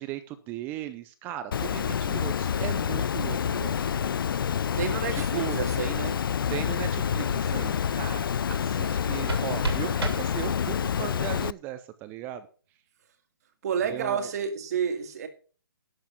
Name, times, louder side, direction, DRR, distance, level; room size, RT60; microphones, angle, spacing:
voice 1, 0.0-3.9 5.1-5.6 6.5-12.5 13.8-14.3, right 13 dB, 15° right, 0.5 m, -37 dB
Water, 1.5-11.5, left 8 dB, 60° left, 0.4 m, -28 dB
voice 2, 4.5-6.2 13.6-15.3, right 7 dB, 40° right, 2.0 m, -30 dB
sound 1, 8.8-10.9, right 3 dB, 90° right, 2.9 m, -35 dB
12.0 x 6.6 x 5.8 m
hypercardioid pair, 155°, 13 cm